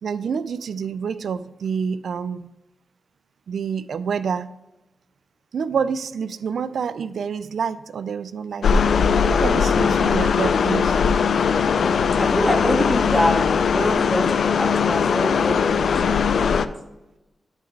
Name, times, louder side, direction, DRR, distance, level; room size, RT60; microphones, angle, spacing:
voice 1, 0.0-2.5 3.5-4.5 5.5-8.7 9.2-11.0, right 6 dB, 80° right, 15 dB, 0.3 m, -27 dB
sound 1, 8.6-16.7, left 6 dB, 75° left, 0.4 m, -20 dB
voice 2, 12.2-16.6, left 1 dB, ahead, 0 dB, 1.7 m, -25 dB
12.5 x 4.7 x 3.2 m, 1.0 s
wide cardioid pair, 115°, 0 cm